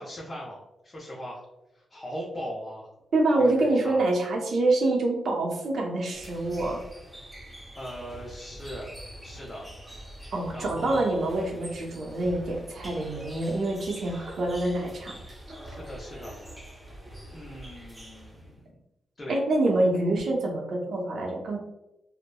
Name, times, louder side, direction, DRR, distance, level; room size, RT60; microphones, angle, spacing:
voice 1, 0.0-1.4 1.7-2.9 3.4-4.0 7.8-8.9 9.2-9.7 10.5-11.0 15.6-16.3 17.3-18.7 19.2-19.4, equal, 30° left, -4 dB, 0.6 m, -39 dB
voice 2, 3.1-6.8 10.3-15.2 19.3-21.6, right 2 dB, 70° right, 0 dB, 0.6 m, -26 dB
sound 1, 6.1-18.6, right 1 dB, 15° right, 0.6 m, -45 dB
2.8 x 2.1 x 2.2 m, 0.92 s
cardioid pair, 70°, 0 cm